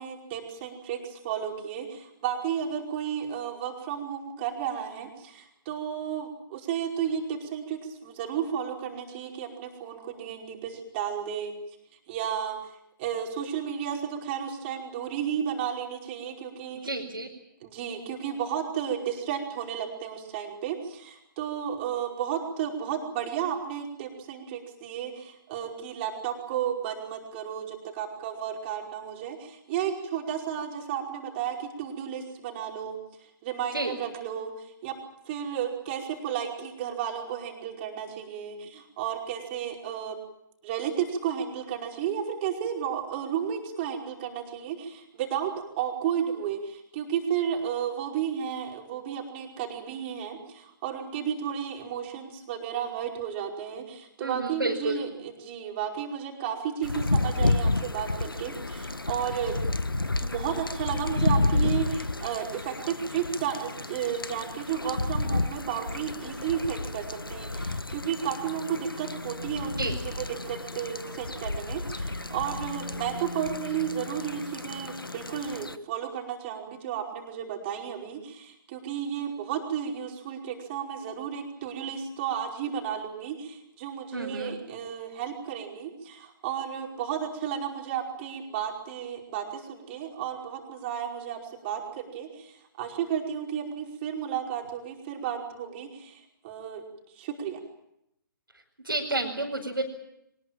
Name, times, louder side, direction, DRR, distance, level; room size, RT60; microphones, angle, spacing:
voice 1, 0.0-11.5 12.1-16.9 17.6-33.0 33.4-34.9 35.2-40.2 40.6-59.6 60.2-96.8 97.1-97.6, right 8 dB, 30° right, 2 dB, 5.2 m, -33 dB
voice 2, 16.8-17.3 33.7-33.9 54.2-55.0 69.8-69.9 84.1-84.6 98.8-99.8, right 2 dB, 85° right, -3 dB, 5.1 m, -30 dB
sound 1, 56.8-75.8, left 2 dB, 85° left, 1.3 m, -31 dB
23.5 x 20.5 x 9.0 m, 0.80 s
figure-of-eight pair, 130°, 12 cm